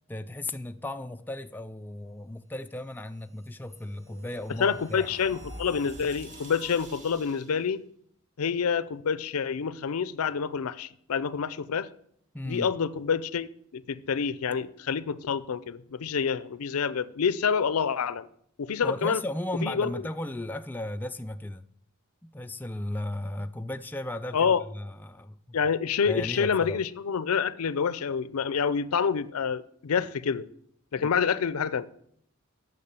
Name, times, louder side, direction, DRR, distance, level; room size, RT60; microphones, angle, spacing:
voice 1, 0.1-5.1 12.3-12.7 18.8-21.7 22.2-25.6 26.1-26.8 31.0-31.1, left 1 dB, 10° left, 0.3 m, -35 dB
sound 1, 3.1-7.7, right 1 dB, 35° right, 1.7 m, -47 dB
voice 2, 4.6-7.8 8.4-11.9 12.4-18.3 18.6-19.2 19.6-19.9 24.3-24.6 25.5-30.5 30.9-31.9, left 6 dB, 85° left, 0.5 m, -27 dB
8.5 x 6.6 x 6.8 m
head